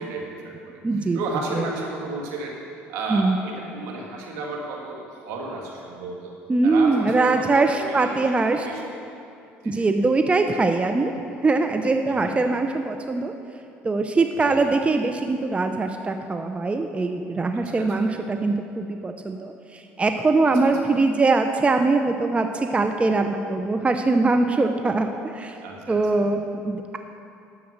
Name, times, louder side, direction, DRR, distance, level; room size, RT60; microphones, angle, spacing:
voice 1, 0.0-2.6 2.9-6.3 6.6-8.2 8.5-9.0 9.6-9.9 12.1-12.4 14.4-14.6 17.5-17.9 20.6-20.7 25.6-26.3, right 3 dB, 75° right, -1 dB, 2.1 m, -33 dB
voice 2, 0.8-1.2 1.5-1.7 3.1-3.4 6.5-8.7 9.6-11.1 11.4-13.3 13.8-25.6 25.9-27.0, right 3 dB, 20° right, 6 dB, 0.7 m, -22 dB
10.5 x 7.1 x 6.5 m, 2.6 s
supercardioid pair, 75°, 5 cm